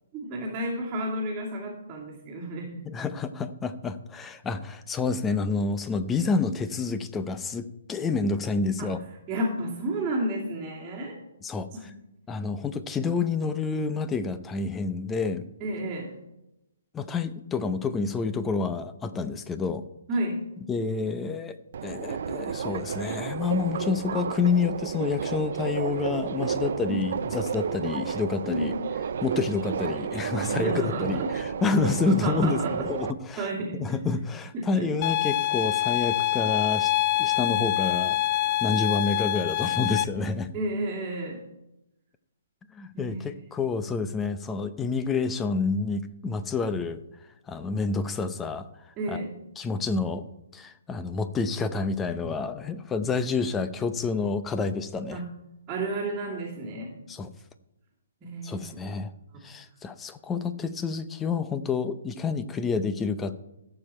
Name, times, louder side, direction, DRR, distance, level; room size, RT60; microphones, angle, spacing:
voice 1, 0.1-2.8 8.8-8.9 9.3-11.2 11.7-11.9 15.6-16.1 20.1-20.4 26.9-27.0 28.4-28.7 30.4-31.3 32.0-32.7 33.4-33.9 34.5-34.9 40.5-41.4 42.9-43.2 49.0-49.4 55.1-55.3 55.7-57.0 58.2-58.7 59.3-59.4, right 1 dB, 20° right, -8 dB, 2.7 m, -31 dB
voice 2, 2.9-9.0 11.4-11.9 12.3-15.5 16.9-19.9 20.7-21.6 21.8-28.7 29.2-33.5 33.7-36.9 37.2-38.2 38.6-40.5 42.7-47.0 47.5-48.7 49.1-49.2 49.6-50.2 50.5-55.2 57.1-57.3 58.4-59.1 59.4-63.4, left 4 dB, 15° left, 11 dB, 0.7 m, -28 dB
Subway metro underground, 21.7-33.1, right 7 dB, 60° right, 0.6 m, -32 dB
sound 1, 35.0-40.0, left 14 dB, 35° left, 0.4 m, -25 dB
16.5 x 7.0 x 4.4 m, 0.91 s
hypercardioid pair, 145°, 0 cm